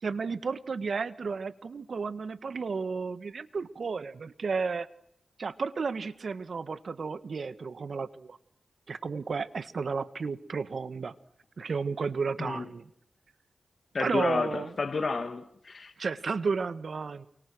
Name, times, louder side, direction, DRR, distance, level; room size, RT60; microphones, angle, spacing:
voice 1, 0.0-4.9 5.4-8.4 8.9-11.1 11.6-12.9 14.0-14.7 16.0-17.3, right 5 dB, 70° right, 1.5 m, -33 dB
voice 2, 13.9-15.9, left 4 dB, 60° left, 2.3 m, -31 dB
29.0 x 25.5 x 6.3 m
cardioid pair, 50°, 0 cm